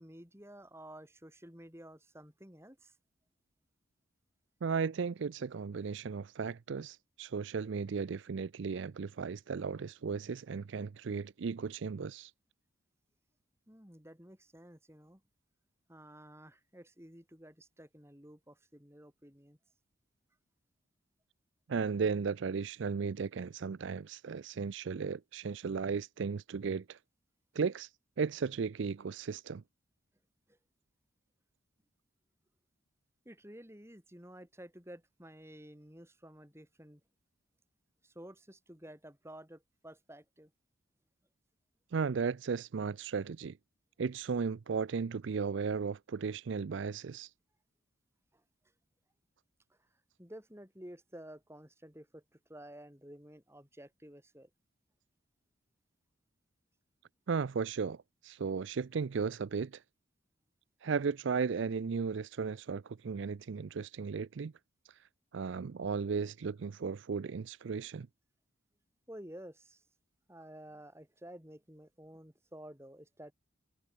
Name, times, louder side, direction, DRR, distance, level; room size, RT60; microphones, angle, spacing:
voice 1, 0.0-2.9 13.7-15.2 15.9-19.6 33.3-37.0 38.0-40.5 50.2-52.2 52.5-54.5 69.1-69.8 70.3-73.3, right 1 dB, 10° right, 5.7 m, -52 dB
voice 2, 4.6-12.3 21.7-27.0 27.5-27.9 28.2-29.6 41.9-43.6 44.0-47.3 57.3-59.8 60.8-64.5 64.9-65.0 65.3-68.1, right 5 dB, 60° right, 0.4 m, -35 dB
head